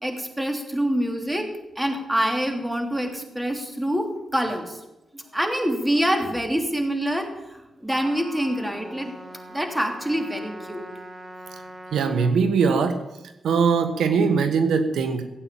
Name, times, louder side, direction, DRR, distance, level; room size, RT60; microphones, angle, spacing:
voice 1, 0.0-1.5 1.7-4.8 5.1-9.1 9.5-10.9, equal, 10° right, 4 dB, 3.3 m, -26 dB
Trumpet, 7.9-12.4, right 1 dB, 35° right, 2.8 m, -42 dB
voice 2, 11.9-13.0 13.4-15.2, right 5 dB, 85° right, 8 dB, 1.3 m, -21 dB
16.0 x 8.9 x 8.6 m, 0.96 s
cardioid pair, 60°, 0 cm